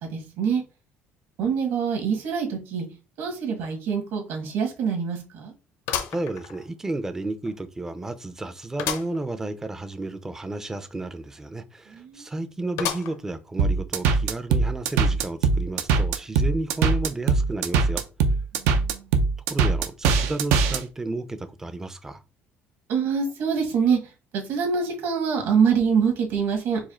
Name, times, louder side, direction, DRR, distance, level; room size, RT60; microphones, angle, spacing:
voice 1, 0.0-0.6 1.4-2.9 3.2-5.5 11.9-12.3 18.5-19.1 22.9-24.0 24.3-26.8, right 6 dB, 65° right, 1.8 m, -25 dB
sound 1, 3.6-3.7 4.2-4.3 5.9-7.0 7.5-7.6 8.8-9.2 9.6-9.7 9.9-10.0 12.8-13.4 14.0-14.1 15.1-15.2, left 9 dB, 75° left, 0.7 m, -31 dB
voice 2, 6.1-18.0 19.5-22.2, right 2 dB, 10° right, 0.4 m, -32 dB
sound 2, 13.6-20.8, right 4 dB, 85° right, 0.6 m, -21 dB
4.7 x 2.3 x 4.3 m
cardioid pair, 150°, 4 cm